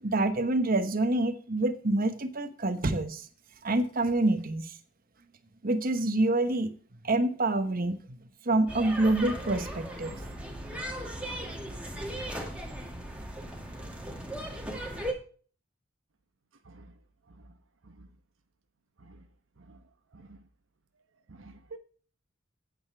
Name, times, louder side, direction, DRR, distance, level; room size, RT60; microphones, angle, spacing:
voice 1, 0.0-3.2 3.6-4.7 5.6-6.7 7.0-8.0 8.5-10.2, right 2 dB, 45° right, 9 dB, 1.1 m, -27 dB
sound 1, 8.7-15.1, right 1 dB, 5° right, 2.0 m, -37 dB
voice 2, 21.3-21.8, right 2 dB, 75° right, 8 dB, 0.9 m, -50 dB
9.1 x 8.9 x 4.6 m, 0.42 s
head